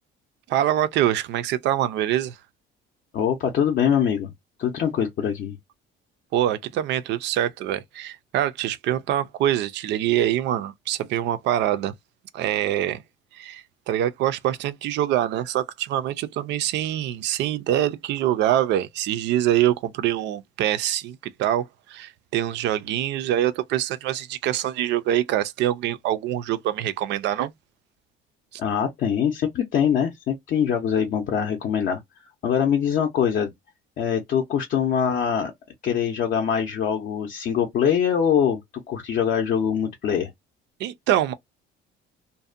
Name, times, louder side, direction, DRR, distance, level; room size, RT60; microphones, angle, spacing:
voice 1, 0.5-2.4 6.3-11.9 12.3-13.0 13.3-27.5 28.5-28.6 40.8-41.3, right 12 dB, 60° right, 0.4 m, -24 dB
voice 2, 3.1-4.3 4.6-5.6 28.6-32.0 32.4-33.5 34.0-35.5 35.8-38.6 38.9-40.3, left 8 dB, 45° left, 0.5 m, -23 dB
2.6 x 2.1 x 2.4 m
cardioid pair, 170°, 20 cm